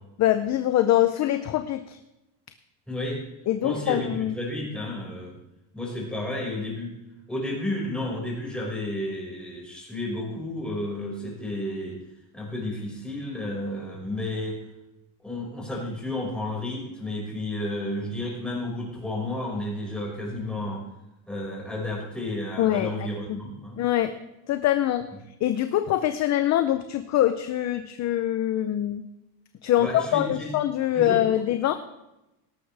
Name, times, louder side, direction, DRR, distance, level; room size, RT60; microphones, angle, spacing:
voice 1, 0.2-2.0 3.5-4.3 22.6-23.4 23.8-24.1 24.5-25.1 25.4-29.0 29.6-31.7, left 12 dB, 35° left, 9 dB, 0.6 m, -24 dB
voice 2, 2.9-3.2 3.6-5.4 5.7-7.0 7.3-12.0 12.3-14.6 15.2-20.8 21.3-23.8 29.8-30.5 30.9-31.3, left 1 dB, ahead, -4 dB, 5.4 m, -32 dB
17.5 x 13.0 x 3.4 m, 0.94 s
cardioid pair, 150°, 48 cm